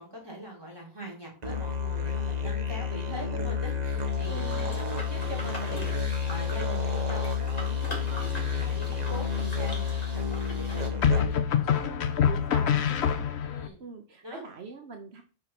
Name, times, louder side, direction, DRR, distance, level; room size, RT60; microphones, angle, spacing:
voice 1, 0.0-4.4 4.8-8.3 8.6-11.4 13.4-13.8 14.2-14.4, equal, 25° right, -3 dB, 4.0 m, -42 dB
Musical instrument, 1.4-11.6, left 5 dB, 40° right, 1.2 m, -30 dB
sound 1, 4.1-10.9, left 1 dB, 35° left, 2.5 m, -42 dB
voice 2, 4.3-4.8 11.8-13.2 13.8-15.2, right 4 dB, 75° right, 5 dB, 1.3 m, -43 dB
sound 2, 8.4-8.9 11.0-13.7, left 8 dB, 80° left, 1.1 m, -26 dB
6.7 x 5.5 x 6.0 m, 0.38 s
omnidirectional pair, 1.1 m